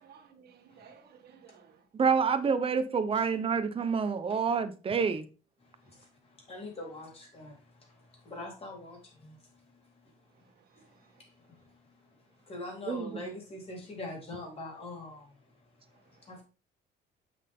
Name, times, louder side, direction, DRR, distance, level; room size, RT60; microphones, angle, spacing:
voice 1, 0.0-1.8 5.9-6.1 10.3-11.2 15.9-16.4, right 7 dB, 65° right, 1.9 m, -58 dB
voice 2, 1.9-5.3 12.9-13.1, right 6 dB, 30° right, 0.9 m, -28 dB
voice 3, 5.6-10.0 10.8-10.9 11.2-12.1 12.5-15.4 16.2-16.4, left 2 dB, 35° left, 3.9 m, -44 dB
7.6 x 6.3 x 3.7 m
cardioid pair, 135°, 18 cm